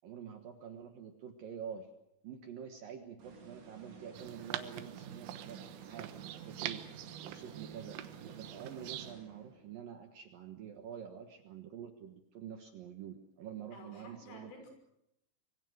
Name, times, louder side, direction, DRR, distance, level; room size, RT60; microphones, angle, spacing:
voice 1, 0.0-1.9 2.2-6.8 7.2-8.0 8.3-14.6, right 8 dB, 65° right, 6 dB, 2.4 m, -47 dB
sound 1, 3.2-9.8, right 5 dB, 40° right, 3.2 m, -54 dB
sound 2, 4.1-9.1, right 12 dB, 85° right, 3.7 m, -44 dB
voice 2, 13.7-14.7, left 3 dB, 90° left, 4 dB, 8.5 m, -52 dB
25.0 x 25.0 x 6.4 m, 0.81 s
omnidirectional pair, 5.5 m